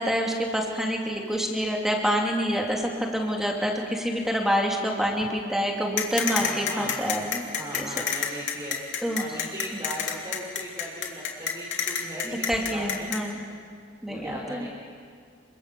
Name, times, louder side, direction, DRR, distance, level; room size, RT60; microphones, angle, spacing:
voice 1, 0.0-7.5 7.7-7.9 9.0-9.2 12.2-13.4 14.0-14.7, equal, ahead, 0 dB, 2.8 m, -27 dB
sound 1, 6.0-13.2, left 7 dB, 70° left, 2.9 m, -28 dB
voice 2, 6.2-7.0 7.5-8.8 9.2-13.1 14.0-14.7, equal, 20° right, -5 dB, 4.3 m, -38 dB
28.5 x 24.5 x 6.9 m, 2.1 s
head